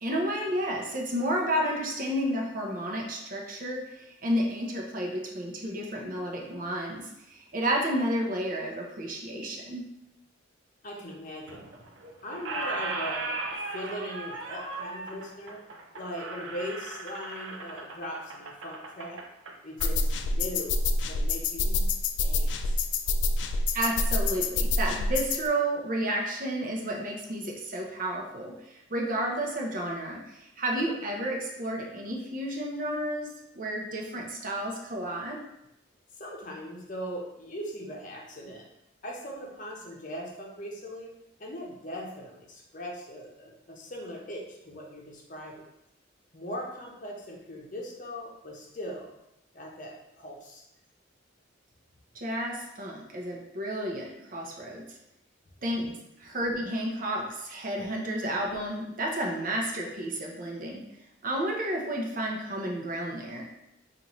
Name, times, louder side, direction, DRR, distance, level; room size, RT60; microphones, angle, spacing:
voice 1, 0.0-9.9 12.0-12.1 23.7-33.3 33.5-35.4 52.1-54.8 55.6-55.9 56.2-60.8 61.2-63.4, right 1 dB, 45° right, -1 dB, 0.7 m, -31 dB
voice 2, 10.8-11.6 12.2-15.6 15.9-19.2 19.6-21.9 22.2-22.8 36.2-38.6 39.0-41.1 41.4-45.6 46.3-49.1 49.5-50.6 55.8-55.9, equal, 40° left, -2 dB, 0.7 m, -40 dB
Squeak, 11.5-12.0 12.3-19.9, right 3 dB, 80° right, 0.5 m, -37 dB
sound 1, 19.8-25.5, left 3 dB, 65° left, 0.3 m, -27 dB
5.4 x 2.5 x 3.0 m, 0.85 s
head